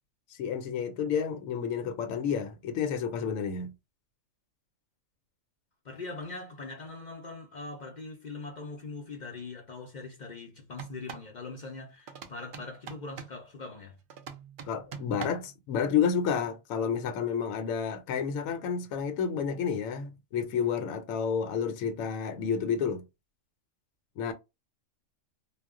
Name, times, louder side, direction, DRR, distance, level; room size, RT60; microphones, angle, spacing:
voice 1, 0.4-3.7 14.7-23.0 24.2-24.3, left 7 dB, 80° left, 1.0 m, -30 dB
voice 2, 5.8-14.0, left 3 dB, 50° left, 0.5 m, -42 dB
sound 1, 10.7-11.3 12.1-13.4 14.1-15.6, right 7 dB, 70° right, 0.4 m, -43 dB
2.3 x 2.1 x 3.5 m
omnidirectional pair, 1.4 m